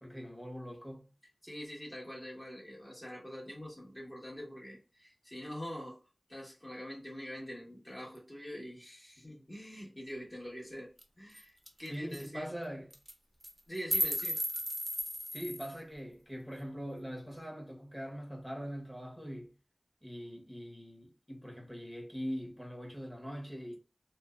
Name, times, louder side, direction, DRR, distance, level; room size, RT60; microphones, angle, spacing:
voice 1, 0.0-1.1 11.9-12.9 15.3-19.5 20.0-23.7, equal, 5° left, 1.0 m, -42 dB
voice 2, 1.4-6.0 6.3-10.9 11.2-12.5 13.7-14.4, equal, 30° left, 1.2 m, -44 dB
sound 1, 11.0-11.1 11.4-11.5 11.7-11.9 12.1-12.3 12.9-13.1 13.4-15.8, equal, 15° right, 0.5 m, -34 dB
2.6 x 2.1 x 2.3 m
wide cardioid pair, 40°, 0 cm